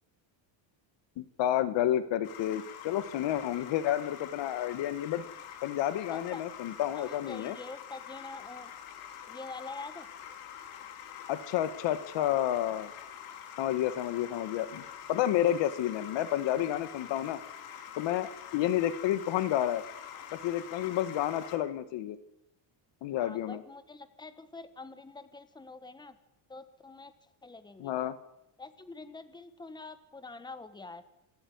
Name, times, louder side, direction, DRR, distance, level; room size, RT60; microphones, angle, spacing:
voice 1, 1.2-5.3 5.6-7.6 11.3-12.9 13.6-17.4 18.0-19.8 20.3-22.2 23.0-23.6 27.8-28.1, left 12 dB, 60° left, 12 dB, 1.8 m, -30 dB
sound 1, 2.2-21.6, left 9 dB, 90° left, 4.1 m, -46 dB
voice 2, 6.1-6.4 7.0-8.7 9.3-10.1 23.2-26.2 26.5-27.1 27.4-27.9 28.6-31.0, left 3 dB, 10° left, 11 dB, 1.5 m, -45 dB
26.0 x 13.5 x 9.6 m, 0.85 s
cardioid pair, 150°, 48 cm